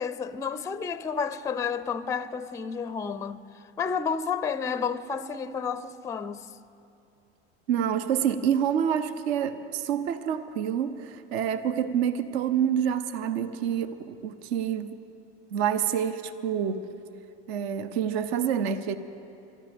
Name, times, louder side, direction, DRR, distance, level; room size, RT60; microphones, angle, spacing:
voice 1, 0.0-6.5, left 6 dB, 10° left, 0.4 m, -31 dB
voice 2, 7.7-15.0 15.5-16.9 17.5-19.0, right 8 dB, 70° right, 0.8 m, -27 dB
21.5 x 12.5 x 5.2 m
hypercardioid pair, 85°, 33 cm